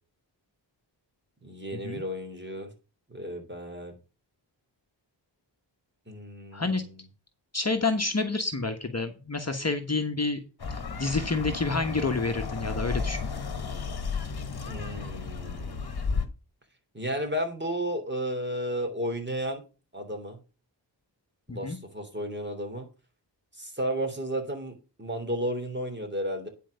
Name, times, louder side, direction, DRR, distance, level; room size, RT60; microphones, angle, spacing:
voice 1, 1.4-2.7 3.1-4.0 6.1-7.0 14.7-15.9 16.9-19.6 19.9-20.4 21.5-22.9 23.6-26.5, equal, 25° right, 3.6 m, -33 dB
voice 2, 6.5-6.8 7.5-10.4 10.7-13.3 21.5-21.8, left 3 dB, 35° left, 1.2 m, -29 dB
sound 1, 10.6-16.3, left 5 dB, 55° left, 1.3 m, -33 dB
10.0 x 4.8 x 6.5 m
wide cardioid pair, 60°, 45 cm